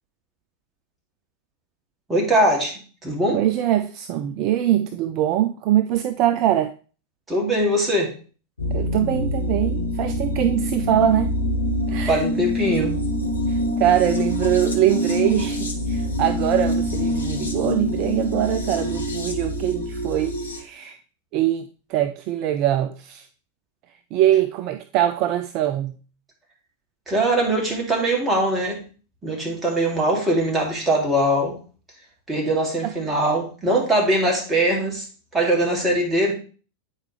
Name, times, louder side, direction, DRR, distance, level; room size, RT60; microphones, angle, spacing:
voice 1, 2.1-2.7 3.0-3.4 7.3-8.1 12.1-13.0 27.1-28.8 29.2-31.6 32.3-35.0 35.3-36.3, right 1 dB, 10° right, 2.4 m, -21 dB
voice 2, 3.3-6.7 8.7-11.3 11.9-12.2 13.5-21.0 21.3-23.3 24.1-26.0 32.8-32.9, right 12 dB, 40° right, 0.4 m, -23 dB
sound 1, 8.6-20.6, left 1 dB, 75° left, 1.2 m, -25 dB
8.9 x 4.6 x 3.2 m
figure-of-eight pair, 90°, 0 cm